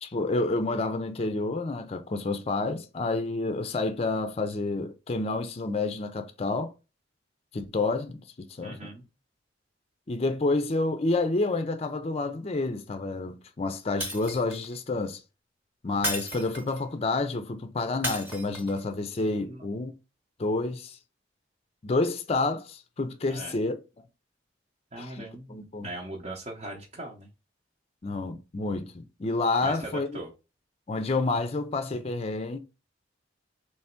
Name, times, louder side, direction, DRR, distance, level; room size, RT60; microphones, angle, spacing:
voice 1, 0.0-6.7 7.5-8.9 10.1-15.2 15.8-19.9 20.4-21.0 21.8-23.8 25.0-25.9 28.0-30.2 30.9-32.6, left 3 dB, 35° left, 0.5 m, -29 dB
voice 2, 8.6-9.1 19.4-19.6 23.3-23.5 24.9-27.3 29.6-30.3, right 2 dB, 35° right, 0.8 m, -40 dB
Shatter, 14.0-14.7 16.0-16.9 18.0-18.8, equal, 10° right, 1.0 m, -34 dB
3.4 x 3.1 x 4.3 m
head